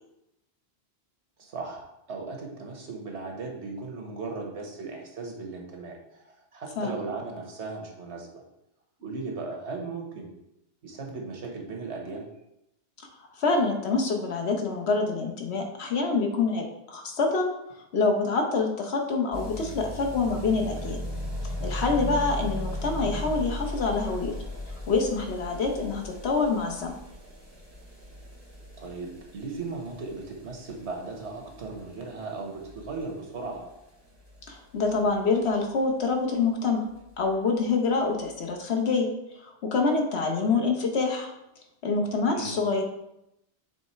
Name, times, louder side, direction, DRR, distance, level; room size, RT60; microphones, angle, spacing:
voice 1, 1.4-8.4 9.0-10.3 10.8-12.2 28.8-33.7 42.3-42.6, right 3 dB, 85° right, 1 dB, 1.4 m, -37 dB
voice 2, 13.4-17.5 17.9-21.0 21.6-24.3 24.9-27.0 34.5-36.9 37.2-39.1 39.4-41.3 41.8-42.8, left 4 dB, 70° left, 2 dB, 1.2 m, -26 dB
sound 1, 19.3-36.1 36.4-36.5 36.7-36.8 37.0-37.1 37.3-37.4 38.1-38.2, left 1 dB, 35° right, 2.4 m, -38 dB
6.3 x 3.4 x 4.3 m, 0.84 s
omnidirectional pair, 1.1 m